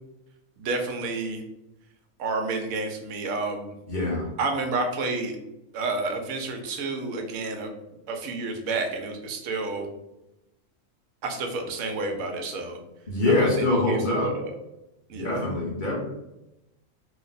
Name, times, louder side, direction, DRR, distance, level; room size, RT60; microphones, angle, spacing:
voice 1, 0.6-1.4 2.2-3.7 4.4-5.3 5.7-7.7 8.1-9.9 11.2-12.8 13.3-13.5 13.9-14.5 15.1-15.4, right 3 dB, 90° right, 4 dB, 1.1 m, -30 dB
voice 2, 3.9-4.3 13.1-14.3 15.1-15.9, left 2 dB, 40° left, -4 dB, 1.0 m, -24 dB
2.9 x 2.1 x 3.9 m, 0.91 s
omnidirectional pair, 1.4 m